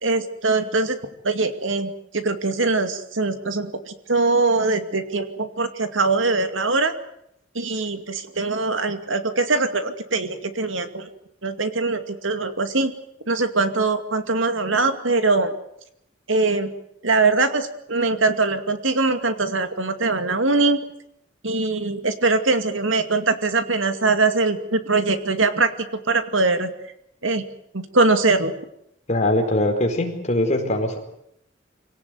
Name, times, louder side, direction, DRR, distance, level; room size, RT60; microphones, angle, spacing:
voice 1, 0.0-1.0 1.2-6.9 7.5-11.1 11.4-12.9 13.3-15.5 16.3-16.7 17.0-20.8 21.4-25.7 26.1-26.7 27.2-27.4 27.7-28.5, right 3 dB, 85° right, 9 dB, 2.4 m, -22 dB
voice 2, 29.1-31.0, left 1 dB, 35° left, 3 dB, 4.7 m, -21 dB
25.5 x 17.5 x 9.4 m, 0.75 s
head